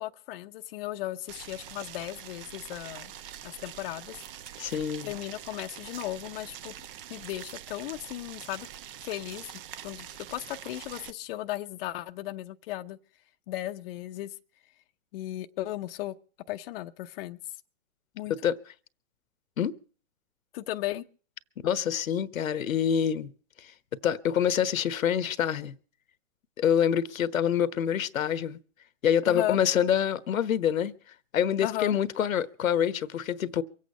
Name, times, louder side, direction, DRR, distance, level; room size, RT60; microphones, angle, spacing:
voice 1, 0.0-3.1 3.4-4.2 5.0-6.7 7.1-8.7 9.0-9.5 9.8-13.0 13.5-14.4 15.1-16.2 16.5-17.4 18.1-18.3 20.5-21.1 29.3-29.6 31.6-32.0, left 15 dB, 45° left, 0.7 m, -36 dB
Boiling, 1.3-11.1, right 10 dB, 45° right, 0.9 m, -44 dB
voice 2, 4.6-5.1 18.4-18.6 19.6-19.8 21.6-23.3 23.6-23.7 24.0-25.7 26.6-28.6 29.0-30.9 31.3-33.6, left 9 dB, 80° left, 1.1 m, -26 dB
24.0 x 8.5 x 5.4 m
hypercardioid pair, 130°, 40 cm